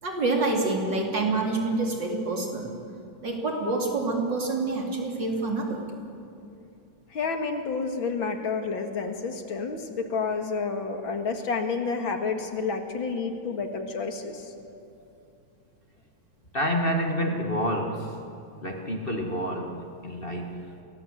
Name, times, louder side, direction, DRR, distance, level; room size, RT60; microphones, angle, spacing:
voice 1, 0.0-2.8 3.2-5.8, right 3 dB, 60° right, 0 dB, 4.5 m, -27 dB
voice 2, 7.1-14.5, left 4 dB, 70° left, 5 dB, 2.7 m, -30 dB
voice 3, 16.5-18.2 18.6-20.6, equal, 25° left, 3 dB, 1.9 m, -28 dB
29.5 x 23.5 x 8.0 m, 2.6 s
omnidirectional pair, 2.2 m